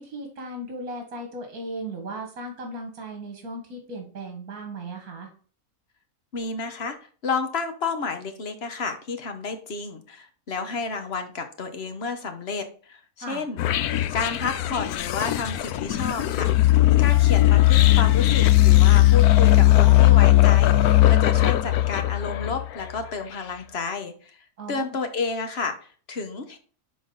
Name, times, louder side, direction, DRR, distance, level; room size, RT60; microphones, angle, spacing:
voice 1, 0.0-5.3 13.2-13.4 24.6-25.0, right 1 dB, 70° right, 2 dB, 2.0 m, -36 dB
voice 2, 6.3-7.0 7.2-13.6 14.1-16.5 17.0-26.6, left 4 dB, 45° left, 7 dB, 1.2 m, -31 dB
sound 1, 13.6-22.8, left 15 dB, 90° left, 1.1 m, -18 dB
10.5 x 3.9 x 3.9 m, 0.42 s
omnidirectional pair, 1.6 m